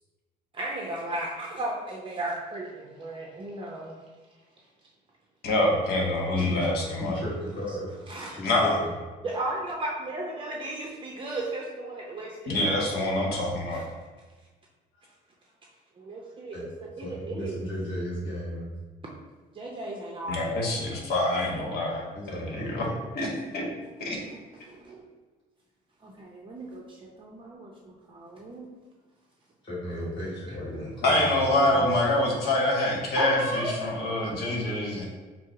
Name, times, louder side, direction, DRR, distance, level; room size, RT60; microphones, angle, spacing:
voice 1, 0.5-4.0 8.1-8.4 9.2-13.2 13.7-13.8 16.0-17.7 19.5-20.6 22.4-22.5 24.0-25.0 26.0-28.7 30.5-30.6 33.1-33.8, right 1 dB, 30° right, -2 dB, 0.6 m, -35 dB
voice 2, 5.4-7.2 8.4-8.8 12.5-13.8 20.3-22.1 22.4-22.9 23.1-23.3 23.5-23.7 24.0-24.2 31.0-35.1, left 1 dB, 70° left, -2 dB, 1.1 m, -25 dB
voice 3, 6.3-6.7 7.0-8.9 16.5-16.6 17.0-18.7 22.1-22.9 29.6-31.8, equal, 30° left, -9 dB, 1.3 m, -35 dB
4.6 x 2.0 x 4.6 m, 1.3 s
cardioid pair, 110°, 17 cm